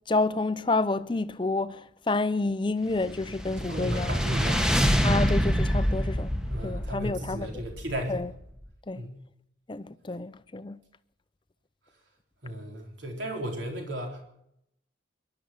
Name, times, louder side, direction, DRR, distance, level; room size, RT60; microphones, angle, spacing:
voice 1, 0.1-4.1 5.0-7.6 8.1-8.3 8.9-9.0 9.7-10.8, left 3 dB, 25° left, 0.6 m, -29 dB
sound 1, 2.9-8.4, equal, 5° right, 1.0 m, -27 dB
voice 2, 3.6-4.7 6.5-8.3 8.9-9.2 12.4-14.2, equal, 70° right, 3.7 m, -35 dB
21.5 x 12.0 x 5.7 m
head